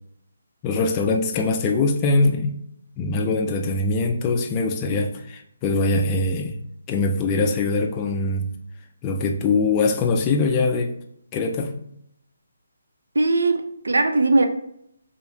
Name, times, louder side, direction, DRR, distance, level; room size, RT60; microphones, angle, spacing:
voice 1, 0.6-2.6 3.0-6.6 6.9-8.5 9.0-10.9 11.3-11.8, left 3 dB, 20° left, 0.3 m, -22 dB
voice 2, 13.1-14.5, right 2 dB, 80° right, 0.5 m, -19 dB
3.1 x 2.7 x 2.7 m
figure-of-eight pair, 155°, 0 cm